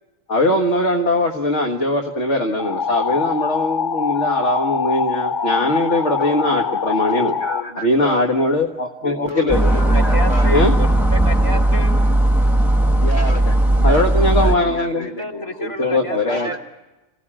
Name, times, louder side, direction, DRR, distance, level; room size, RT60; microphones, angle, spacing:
voice 1, 0.3-7.3 7.8-9.6 10.5-10.7 13.8-15.1 15.6-16.6, left 1 dB, 70° left, 2 dB, 2.0 m, -20 dB
sound 1, 2.6-7.6, left 6 dB, 45° left, 1.3 m, -23 dB
voice 2, 5.9-8.2 9.0-10.6 12.8-15.6 16.3-16.6, left 1 dB, 85° left, 3 dB, 3.9 m, -31 dB
sound 2, 9.5-14.6, right 1 dB, ahead, 2.1 m, -16 dB
voice 3, 9.9-11.9 15.2-16.6, right 1 dB, 25° left, 3 dB, 3.4 m, -29 dB
27.5 x 17.5 x 8.8 m, 1.1 s
omnidirectional pair, 1.2 m